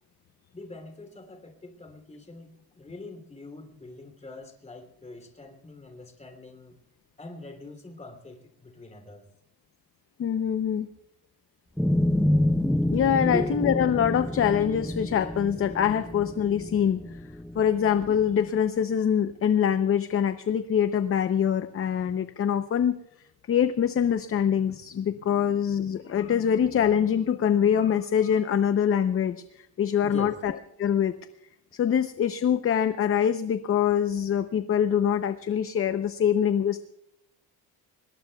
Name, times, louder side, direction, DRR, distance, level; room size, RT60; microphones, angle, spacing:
voice 1, 0.5-6.8 7.2-9.3 13.1-13.4 30.0-30.4, left 2 dB, 15° left, 5 dB, 3.1 m, -44 dB
voice 2, 10.2-10.9 12.9-17.0 17.5-23.0 23.5-29.4 29.8-30.5 30.8-31.1 31.7-36.8, left 8 dB, 35° left, 10 dB, 0.7 m, -24 dB
sound 1, 11.8-18.3, left 1 dB, ahead, 0.5 m, -28 dB
25.0 x 21.5 x 2.3 m, 0.79 s
cardioid pair, 145°, 39 cm